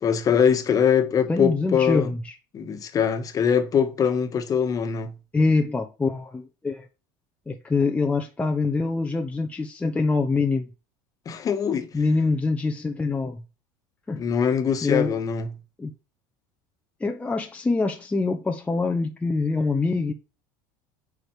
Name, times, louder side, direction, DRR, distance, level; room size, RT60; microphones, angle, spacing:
voice 1, 0.0-2.1 2.5-5.1 11.3-11.9 14.2-15.5, left 7 dB, 35° left, 1.6 m, -22 dB
voice 2, 1.3-2.3 5.3-6.9 7.5-10.7 11.9-13.4 14.1-14.2 14.8-15.1 15.8-15.9 17.0-20.1, left 3 dB, 15° left, 1.0 m, -24 dB
8.9 x 4.9 x 4.9 m
supercardioid pair, 100°, 10 cm